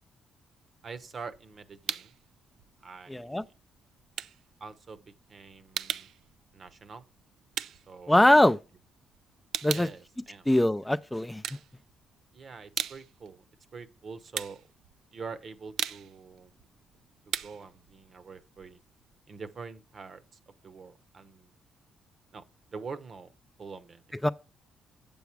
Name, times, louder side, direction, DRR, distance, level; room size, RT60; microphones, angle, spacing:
voice 1, 0.8-2.1 2.8-3.5 4.6-6.1 6.5-7.1 7.9-8.5 9.7-10.5 12.3-13.4 13.7-14.7 15.1-16.5 17.3-18.8 19.3-21.5 22.3-23.3 23.6-24.3, right 5 dB, 45° right, 0.9 m, -45 dB
sound 1, 1.0-2.3 2.6-8.8 9.1-10.9 11.3-12.2 12.5-19.2, right 10 dB, 75° right, 0.4 m, -38 dB
voice 2, 3.1-3.4 8.1-8.6 9.6-9.9 10.5-11.4 24.2-24.3, left 1 dB, 10° left, 0.4 m, -22 dB
8.1 x 7.1 x 4.6 m
cardioid pair, 90°, 0 cm